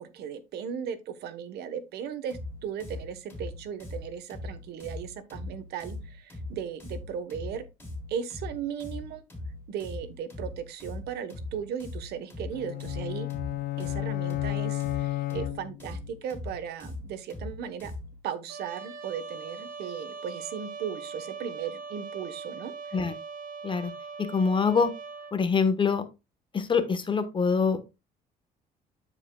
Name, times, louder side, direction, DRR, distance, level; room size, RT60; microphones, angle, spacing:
voice 1, 0.0-7.7 8.1-9.2 9.7-13.3 13.8-17.9 18.2-23.0, right 8 dB, 75° right, 1.1 m, -37 dB
sound 1, 2.3-18.2, left 2 dB, 10° left, 3.3 m, -40 dB
sound 2, 12.5-16.1, left 16 dB, 60° left, 0.4 m, -32 dB
Trumpet, 18.5-25.4, right 4 dB, 55° right, 1.3 m, -41 dB
voice 2, 24.2-24.9 25.3-26.0 26.5-27.8, left 5 dB, 30° left, 1.1 m, -24 dB
12.5 x 4.9 x 2.2 m
cardioid pair, 110°, 17 cm